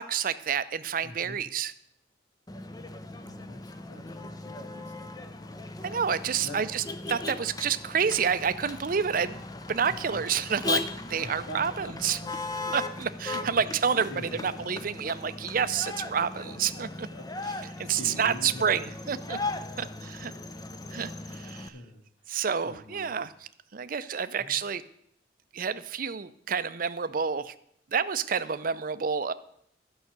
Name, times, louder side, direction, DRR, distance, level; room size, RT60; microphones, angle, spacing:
voice 1, 0.0-1.7 5.8-9.4 9.7-10.8 11.1-12.2 12.7-14.1 14.4-17.1 17.8-19.4 19.8-20.3 20.9-21.7 22.3-23.3 23.7-24.8 25.5-27.5 27.9-29.3, right 7 dB, 50° right, 13 dB, 0.5 m, -29 dB
voice 2, 1.0-1.4 3.2-5.1 6.4-6.6 9.9-10.2 11.2-12.3 13.4-13.6 14.1-14.8 16.4-18.9 20.2-20.6 21.7-22.0 22.6-23.2 24.4-24.5, left 1 dB, 75° left, 4 dB, 2.0 m, -45 dB
Motor vehicle (road), 2.5-21.7, left 3 dB, 20° left, 0.6 m, -38 dB
12.5 x 5.7 x 8.0 m, 0.72 s
head